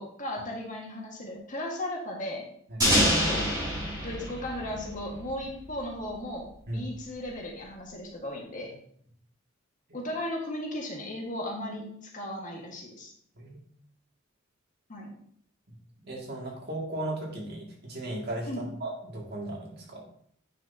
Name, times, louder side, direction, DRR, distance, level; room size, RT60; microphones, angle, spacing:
voice 1, 0.0-2.5 2.8-3.5 4.0-8.7 9.9-13.1 14.9-15.1 18.5-18.7, left 1 dB, 40° left, -1 dB, 1.6 m, -36 dB
sound 1, 2.8-5.6, equal, 20° right, 3.5 m, -26 dB
voice 2, 16.0-20.0, right 1 dB, 55° right, -2 dB, 2.2 m, -36 dB
9.2 x 6.1 x 2.8 m, 0.63 s
head